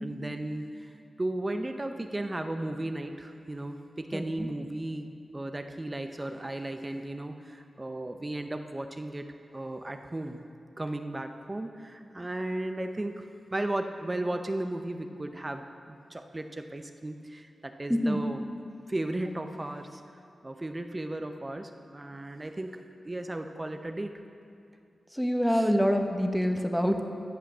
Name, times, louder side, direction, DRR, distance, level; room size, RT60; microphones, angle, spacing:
voice 1, 0.0-9.3 9.5-10.4 10.8-18.4 18.9-20.0 20.4-24.1 25.5-25.7, right 1 dB, 30° right, 6 dB, 0.7 m, -35 dB
voice 2, 4.1-4.5 17.9-18.2 25.1-27.0, equal, ahead, 5 dB, 1.2 m, -26 dB
15.0 x 5.7 x 6.1 m, 2.5 s
cardioid pair, 40°, 0 cm